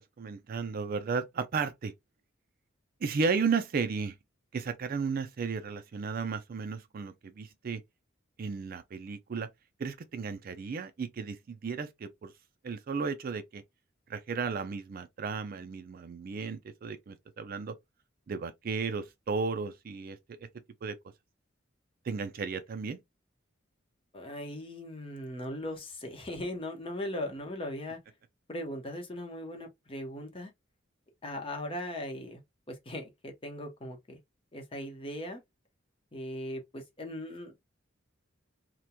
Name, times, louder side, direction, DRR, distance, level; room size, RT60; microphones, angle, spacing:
voice 1, 0.2-1.9 3.0-4.2 4.5-7.8 8.4-9.5 9.8-12.3 12.6-13.6 14.1-17.7 18.3-20.4 20.8-20.9 22.1-23.0, right 5 dB, 50° right, 0.4 m, -34 dB
voice 2, 24.1-28.0 28.5-30.5 31.2-32.4 32.7-34.2 34.5-35.4 36.1-37.5, left 1 dB, 30° left, 0.8 m, -39 dB
2.9 x 2.1 x 2.2 m
head